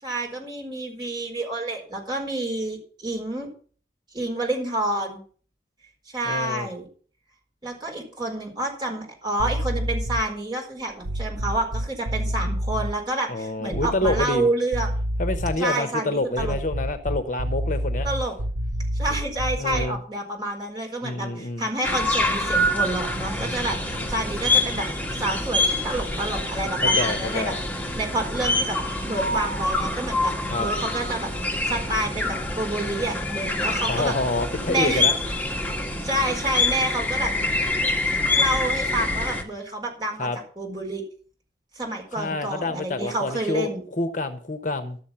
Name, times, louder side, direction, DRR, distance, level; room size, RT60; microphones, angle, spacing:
voice 1, 0.0-3.5 4.1-5.2 6.1-6.9 7.6-14.9 15.5-16.6 18.0-18.3 18.9-24.9 25.2-27.5 28.0-28.8 29.0-31.3 31.6-34.1 34.7-35.1 36.0-37.3 38.3-40.3 40.6-41.0 41.7-43.8, right 1 dB, 25° right, 0 dB, 4.6 m, -28 dB
voice 2, 6.2-6.7 13.3-14.5 15.2-18.1 19.6-20.0 21.0-21.7 23.4-23.5 23.9-24.1 26.8-27.6 30.5-30.7 33.9-35.1 40.2-40.4 42.2-45.0, left 2 dB, 45° left, 9 dB, 1.0 m, -27 dB
sound 1, 9.4-10.4 11.0-12.9 13.7-14.4 14.7-15.7 16.3-20.0, equal, 75° right, 0.7 m, -28 dB
sound 2, 21.8-39.4, left 2 dB, 10° left, 1.7 m, -26 dB
12.5 x 7.2 x 7.2 m, 0.43 s
head